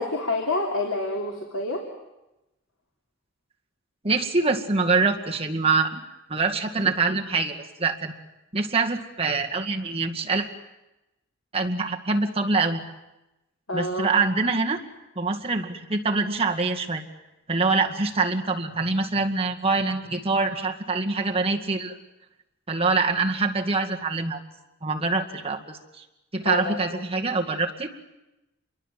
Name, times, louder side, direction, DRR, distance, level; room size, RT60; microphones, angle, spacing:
voice 1, 0.0-1.8 13.7-14.1 26.4-26.8, left 2 dB, 80° left, 1 dB, 3.3 m, -27 dB
voice 2, 4.0-6.0 6.3-8.1 8.5-10.5 11.5-12.8 13.7-14.8 15.2-17.0 17.5-22.0 22.7-24.4 24.8-26.0 26.3-27.9, right 4 dB, 30° right, 2 dB, 2.1 m, -25 dB
27.5 x 23.0 x 7.7 m, 0.96 s
head